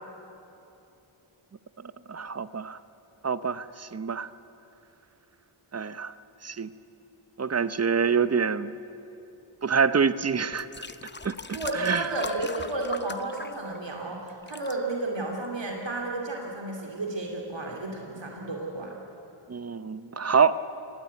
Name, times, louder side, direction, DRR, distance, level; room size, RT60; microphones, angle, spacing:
voice 1, 2.1-2.8 3.2-4.3 5.7-6.1 6.4-6.7 7.4-8.8 9.6-10.7 11.2-12.0 19.5-20.6, right 6 dB, 30° right, 14 dB, 0.8 m, -26 dB
sound 1, 10.5-14.0 14.3-14.7 15.4-15.5, left 3 dB, 25° left, 0.8 m, -39 dB
voice 2, 11.5-18.9, right 2 dB, 65° right, 0 dB, 2.6 m, -32 dB
23.0 x 17.5 x 9.4 m, 2.9 s
wide cardioid pair, 80°, 48 cm